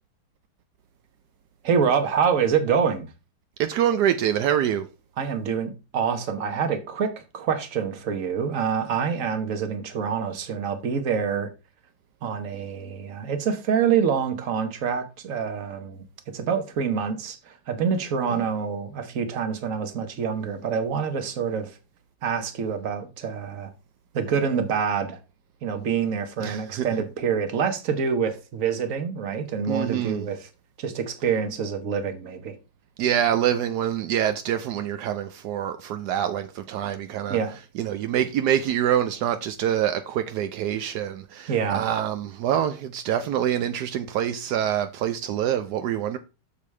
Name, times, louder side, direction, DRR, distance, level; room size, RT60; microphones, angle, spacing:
voice 1, 1.6-3.1 5.2-11.5 12.2-21.7 22.2-23.7 24.1-25.2 25.6-30.5 30.8-32.6 37.3-37.5 41.5-41.8, right 6 dB, 50° right, 1.2 m, -26 dB
voice 2, 3.6-4.9 26.4-26.9 29.7-30.2 33.0-37.4 37.8-46.2, right 10 dB, 75° right, 0.9 m, -25 dB
8.4 x 6.8 x 3.2 m
omnidirectional pair, 2.3 m